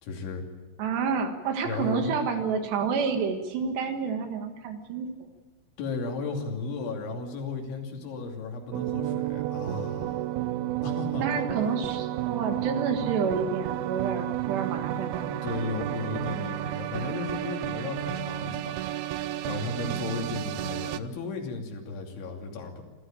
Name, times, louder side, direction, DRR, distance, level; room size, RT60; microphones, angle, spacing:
voice 1, 0.0-0.5 1.7-2.1 5.8-10.3 10.8-11.4 14.9-18.8 19.5-22.8, left 3 dB, 75° left, 2 dB, 5.2 m, -34 dB
voice 2, 0.8-5.1 11.1-15.3, right 5 dB, 70° right, 6 dB, 3.6 m, -29 dB
sound 1, 8.7-21.0, right 13 dB, 85° right, 2.1 m, -32 dB
27.0 x 14.0 x 9.1 m, 1.3 s
omnidirectional pair, 5.5 m